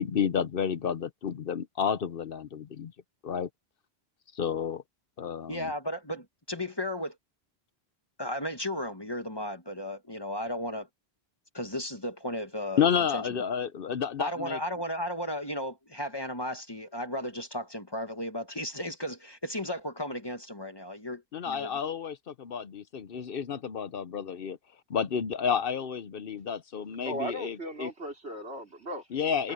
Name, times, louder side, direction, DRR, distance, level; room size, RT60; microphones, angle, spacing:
voice 1, 0.0-2.9 3.2-3.5 4.3-4.8 5.2-5.7 12.8-14.6 21.3-24.6 24.9-27.9 29.1-29.5, left 7 dB, 60° left, 0.9 m, -30 dB
voice 2, 5.5-7.1 8.2-10.9 11.5-12.8 13.1-13.3 14.2-21.8, equal, 25° left, 1.5 m, -35 dB
voice 3, 27.0-29.1 29.4-29.5, right 1 dB, 80° right, 4.3 m, -37 dB
omnidirectional pair, 1.1 m